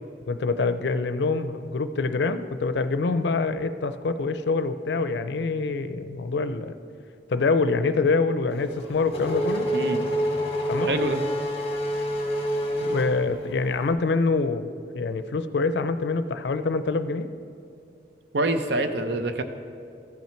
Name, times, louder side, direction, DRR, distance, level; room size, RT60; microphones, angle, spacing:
voice 1, 0.3-6.7 7.3-9.7 10.7-10.9 12.8-17.3, left 3 dB, 80° left, 11 dB, 0.4 m, -25 dB
Race car auto racing / Accelerating revving vroom, 8.5-13.8, equal, 35° left, 1.0 m, -27 dB
voice 2, 9.7-10.0 10.8-11.2 18.3-19.4, right 2 dB, 75° right, 8 dB, 0.6 m, -26 dB
14.0 x 5.7 x 4.5 m, 2.4 s
head